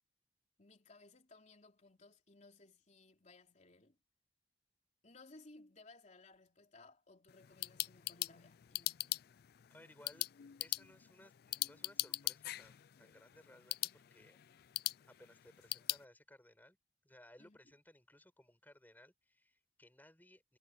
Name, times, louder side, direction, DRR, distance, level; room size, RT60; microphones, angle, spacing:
voice 1, 0.6-4.0 5.0-9.3 17.4-17.6, left 3 dB, 40° left, 3.4 m, -61 dB
sound 1, 7.3-16.0, left 16 dB, 55° left, 0.3 m, -42 dB
voice 2, 9.7-10.3 10.6-14.4 15.1-16.8 17.0-20.6, left 1 dB, 10° left, 6.9 m, -62 dB
head